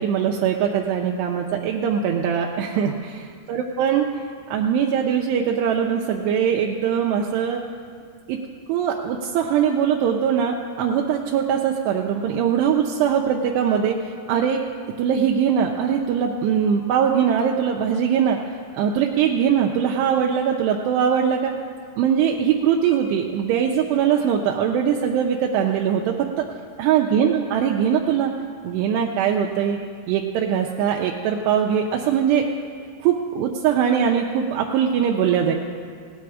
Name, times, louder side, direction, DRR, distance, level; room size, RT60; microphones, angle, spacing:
voice 1, 0.0-4.2 4.5-7.6 8.3-8.4 8.7-14.6 15.0-18.4 18.7-21.5 22.0-26.4 26.8-28.3 28.6-29.8 30.1-32.5 33.0-35.5, right 8 dB, 80° right, 0 dB, 2.6 m, -21 dB
17.5 x 9.4 x 4.8 m, 2.1 s
omnidirectional pair, 5.1 m